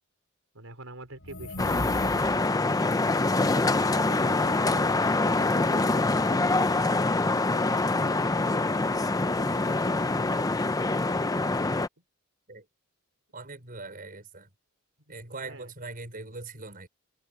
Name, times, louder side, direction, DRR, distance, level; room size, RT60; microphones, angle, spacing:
voice 1, 0.5-2.6 3.1-6.8 9.3-10.5 11.4-11.6 12.0-12.1 15.1-15.7, right 2 dB, 80° right, 5.0 m, -45 dB
sound 1, 1.1-2.7, left 1 dB, 65° left, 7.3 m, -37 dB
sound 2, 1.6-11.9, left 2 dB, 15° left, 0.6 m, -25 dB
voice 2, 13.3-14.5 15.1-16.9, right 3 dB, 45° right, 5.8 m, -41 dB
open air
head